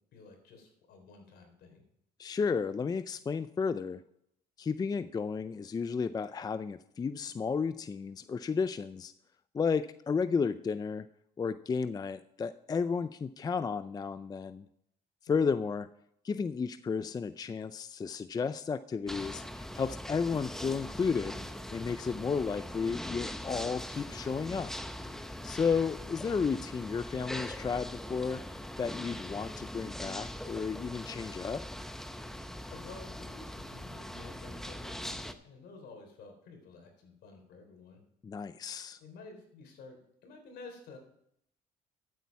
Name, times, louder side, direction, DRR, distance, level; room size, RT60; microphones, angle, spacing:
voice 1, 0.1-1.8 15.3-15.4 25.5-25.6 32.7-38.0 39.0-41.0, left 4 dB, 70° left, 4 dB, 3.7 m, -51 dB
voice 2, 2.2-4.0 4.6-9.1 9.5-11.1 11.4-14.7 15.2-15.9 16.2-21.4 21.7-24.7 25.4-28.4 28.8-31.6 38.2-39.0, left 5 dB, 25° left, 12 dB, 0.4 m, -33 dB
sound 1, 19.1-35.3, left 1 dB, ahead, 0.8 m, -41 dB
13.0 x 8.3 x 4.7 m, 0.72 s
cardioid pair, 110°, 17 cm